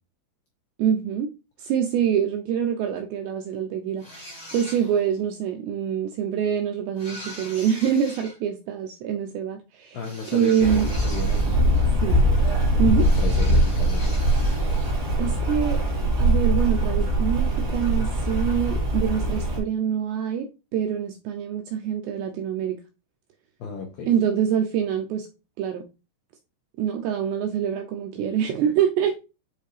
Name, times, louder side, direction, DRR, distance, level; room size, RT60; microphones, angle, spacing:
voice 1, 0.8-1.3 1.6-10.0 10.3-10.9 12.0-12.3 12.8-13.1 15.2-15.8 16.2-22.8 24.1-25.3 25.6-25.8 26.8-29.2, right 8 dB, 90° right, 2.4 m, -25 dB
sound 1, 4.0-5.2 7.0-8.4 10.0-12.0 13.0-15.0, equal, 20° left, 1.7 m, -42 dB
voice 2, 9.9-11.6 12.7-14.2 23.6-24.1, left 5 dB, 75° left, 2.2 m, -34 dB
Rain, 10.6-19.6, right 1 dB, 30° right, 2.5 m, -22 dB
9.9 x 3.7 x 3.2 m
omnidirectional pair, 5.6 m